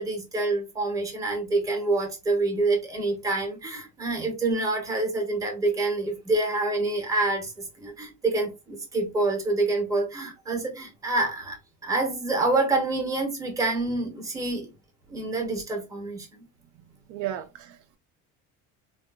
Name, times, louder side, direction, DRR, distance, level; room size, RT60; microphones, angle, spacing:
voice 1, 0.0-11.6 11.8-14.7 15.1-16.4, right 2 dB, 10° right, 0.7 m, -27 dB
voice 2, 17.1-18.0, right 12 dB, 65° right, 0.4 m, -34 dB
3.7 x 2.3 x 2.3 m
cardioid pair, 175°, 33 cm